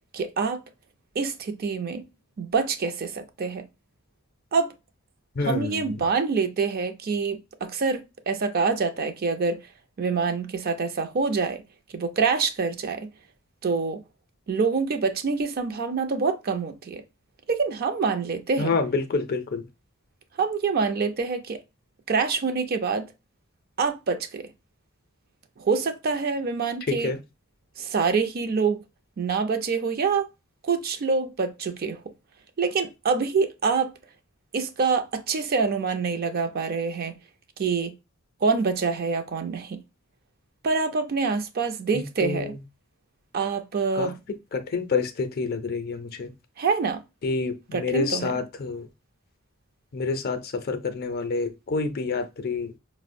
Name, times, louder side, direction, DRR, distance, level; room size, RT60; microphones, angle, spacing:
voice 1, 0.1-0.6 1.2-2.1 2.4-3.7 4.5-4.7 5.5-9.6 10.0-11.6 11.9-13.1 13.6-14.0 14.5-17.0 17.5-18.7 20.4-21.6 22.1-23.1 23.8-24.5 25.6-27.1 27.8-28.8 29.2-30.3 30.6-32.0 32.6-33.9 34.5-37.2 37.6-37.9 38.4-39.8 40.6-42.5 43.3-44.1 46.6-47.0 47.7-48.3, right 4 dB, 45° right, 0.4 m, -26 dB
voice 2, 5.3-6.0 18.6-19.7 26.9-27.2 41.9-42.6 43.9-44.1 44.5-46.3 47.2-48.9 49.9-52.7, left 4 dB, 45° left, 0.5 m, -28 dB
4.8 x 2.0 x 2.5 m
head